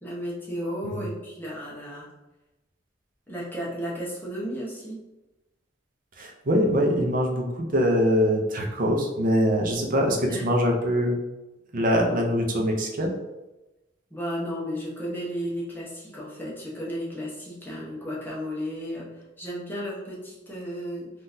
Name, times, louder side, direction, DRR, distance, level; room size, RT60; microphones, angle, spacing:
voice 1, 0.0-2.1 3.3-5.0 10.3-10.4 14.1-21.1, equal, 10° left, -6 dB, 0.8 m, -34 dB
voice 2, 6.2-11.2 11.7-13.1, equal, 45° right, 1 dB, 0.6 m, -23 dB
3.7 x 2.5 x 2.7 m, 1.0 s
head